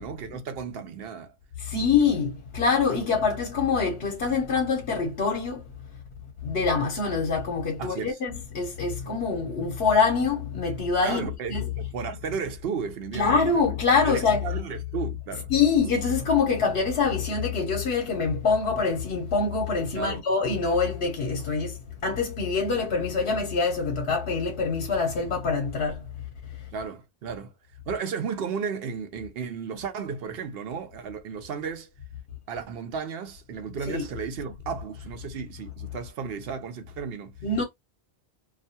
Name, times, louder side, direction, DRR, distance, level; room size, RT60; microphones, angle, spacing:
voice 1, 0.0-1.3 7.8-8.2 11.0-13.7 14.0-15.5 19.9-20.2 26.7-27.5 27.9-31.9 32.5-37.4, right 6 dB, 70° right, 0.8 m, -34 dB
voice 2, 1.6-5.6 6.4-11.7 13.1-14.5 15.5-26.0 33.8-34.1 37.4-37.6, left 5 dB, 70° left, 0.9 m, -25 dB
2.3 x 2.2 x 2.7 m
omnidirectional pair, 1.1 m